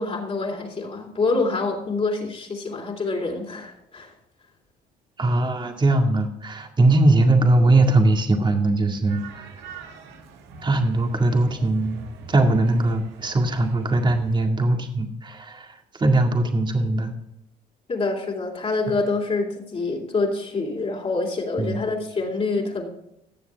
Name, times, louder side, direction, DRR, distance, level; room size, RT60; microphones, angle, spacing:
voice 1, 0.0-4.1 17.9-22.9, left 3 dB, 35° left, -1 dB, 3.4 m, -26 dB
voice 2, 5.2-9.5 10.6-17.1 21.6-21.8, right 2 dB, 25° right, 4 dB, 2.1 m, -20 dB
sound 1, 9.1-14.4, right 4 dB, 85° right, 1.8 m, -44 dB
17.0 x 7.2 x 3.5 m, 0.83 s
supercardioid pair, 90°, 18 cm